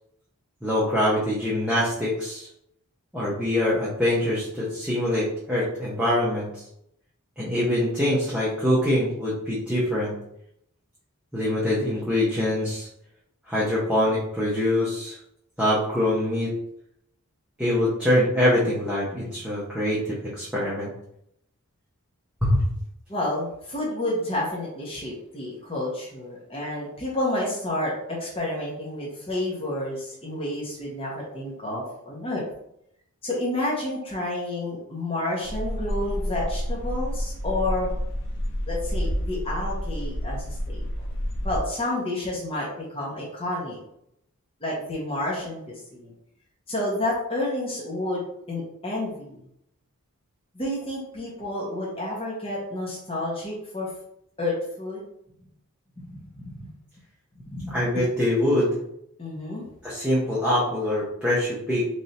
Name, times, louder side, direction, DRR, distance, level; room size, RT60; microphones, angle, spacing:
voice 1, 0.6-2.5 3.1-6.5 7.4-10.1 11.3-12.9 13.5-15.1 15.6-16.5 17.6-20.9 22.4-22.6 57.7-58.7 59.8-61.9, left 1 dB, 5° right, -8 dB, 0.7 m, -24 dB
voice 2, 23.1-32.4 33.2-37.9 38.7-40.8 41.4-43.8 44.6-45.6 45.9-46.1 46.7-49.4 50.5-53.9 54.4-55.0 56.0-56.6 57.5-57.8 59.2-59.6, left 1 dB, 25° left, -5 dB, 0.9 m, -30 dB
sound 1, 35.4-41.6, equal, 55° left, 0.6 m, -29 dB
3.2 x 2.6 x 4.1 m, 0.76 s
head